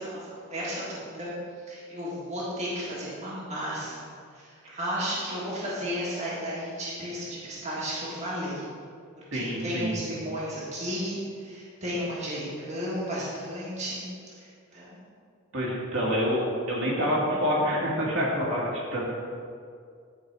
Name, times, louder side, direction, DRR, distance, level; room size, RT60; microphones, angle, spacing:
voice 1, 0.0-1.3 1.7-8.6 9.3-15.0, equal, 35° right, -7 dB, 1.7 m, -34 dB
voice 2, 9.3-10.0 14.7-14.8 15.5-19.1, equal, 70° right, -5 dB, 2.1 m, -27 dB
10.5 x 4.7 x 4.7 m, 2.3 s
head